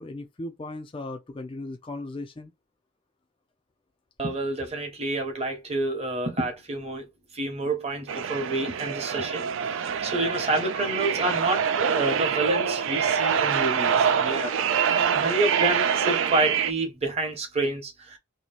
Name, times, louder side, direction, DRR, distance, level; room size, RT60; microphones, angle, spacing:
voice 1, 0.0-2.5, left 2 dB, 25° left, 0.3 m, -37 dB
voice 2, 4.2-7.0 7.3-11.7 11.9-14.5 15.1-18.2, right 2 dB, 30° right, 0.9 m, -28 dB
sound 1, 8.1-16.7, right 7 dB, 60° right, 0.3 m, -25 dB
2.8 x 2.7 x 4.2 m
head